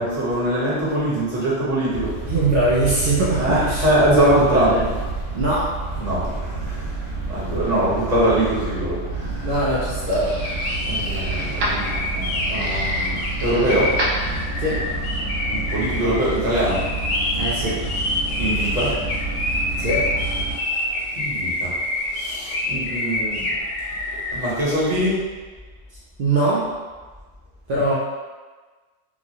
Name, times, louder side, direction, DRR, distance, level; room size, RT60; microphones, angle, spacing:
voice 1, 0.0-2.3 3.4-4.7 6.0-6.9 7.3-9.5 10.9-13.9 15.5-16.8 18.4-18.9 21.1-21.8 22.1-23.5 24.3-25.2, right 1 dB, 35° right, -9 dB, 1.0 m, -23 dB
sound 1, 1.9-20.6, right 3 dB, 25° left, 1.2 m, -29 dB
voice 2, 2.2-3.9 4.1-4.9 5.3-5.8 9.4-10.4 14.6-14.8 17.3-17.9 19.8-20.1 26.2-26.7 27.7-27.9, right 2 dB, 60° right, -8 dB, 0.6 m, -22 dB
sound 2, 8.9-14.8, equal, 85° right, 1.0 m, -32 dB
sound 3, 10.2-24.5, left 2 dB, 80° left, 1.0 m, -27 dB
2.9 x 2.3 x 2.7 m, 1.4 s
omnidirectional pair, 1.3 m